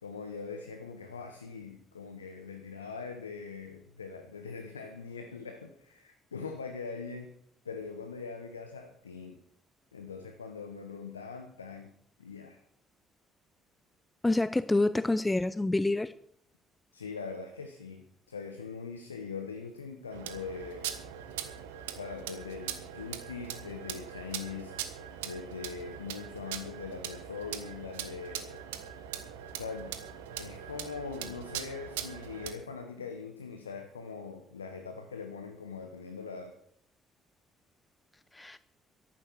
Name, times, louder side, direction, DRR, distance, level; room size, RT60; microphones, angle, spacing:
voice 1, 0.0-7.3 7.6-9.4 9.9-11.9 12.2-12.6 16.9-21.0 21.9-24.8 25.2-28.6 29.5-30.0 30.4-36.6, left 5 dB, 85° left, 7 dB, 1.0 m, -42 dB
voice 2, 14.2-16.1 38.3-38.6, left 2 dB, 15° left, 15 dB, 0.6 m, -27 dB
sound 1, 20.1-32.5, right 10 dB, 75° right, 1.4 m, -41 dB
13.5 x 12.0 x 6.2 m, 0.63 s
figure-of-eight pair, 45°, 0 cm